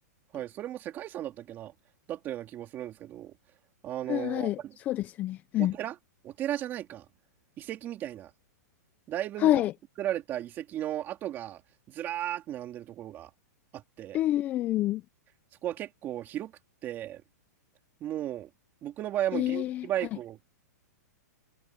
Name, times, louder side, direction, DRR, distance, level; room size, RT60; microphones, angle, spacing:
voice 1, 0.3-1.7 2.1-3.3 3.8-4.8 5.6-6.0 6.2-7.0 7.6-8.3 9.1-9.6 10.0-11.6 11.9-13.3 13.7-14.2 15.6-16.5 16.8-17.2 18.0-18.5 18.8-20.5, right 12 dB, 20° right, 3.3 m, -35 dB
voice 2, 4.1-4.6 4.9-5.7 9.4-9.7 14.1-15.0 19.3-19.8, left 14 dB, 15° left, 0.4 m, -27 dB
hypercardioid pair, 165°, 9 cm